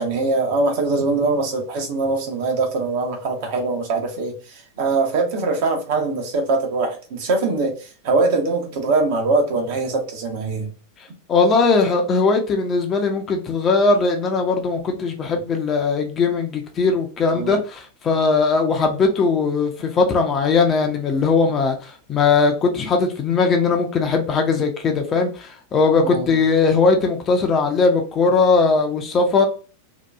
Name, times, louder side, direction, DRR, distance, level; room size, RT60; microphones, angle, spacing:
voice 1, 0.0-10.7 17.3-17.5 26.0-26.4, right 3 dB, 50° right, 2 dB, 0.8 m, -22 dB
voice 2, 11.3-29.4, left 4 dB, 25° left, 3 dB, 0.5 m, -19 dB
2.8 x 2.3 x 2.3 m, 0.36 s
figure-of-eight pair, 90°, 0 cm